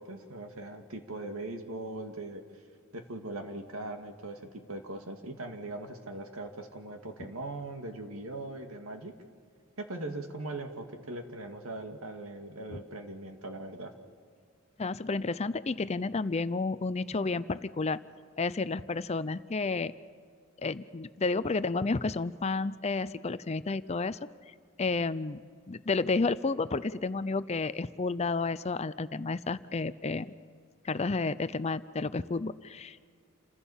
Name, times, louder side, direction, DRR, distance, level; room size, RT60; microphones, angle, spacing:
voice 1, 0.0-2.4 2.9-9.1 9.8-13.9, right 2 dB, 80° right, 5 dB, 2.2 m, -40 dB
voice 2, 14.8-18.0 18.4-19.9 20.6-24.2 24.8-25.4 25.7-30.3 30.8-33.2, left 3 dB, 30° left, 15 dB, 0.5 m, -31 dB
28.5 x 15.5 x 7.3 m, 2.2 s
head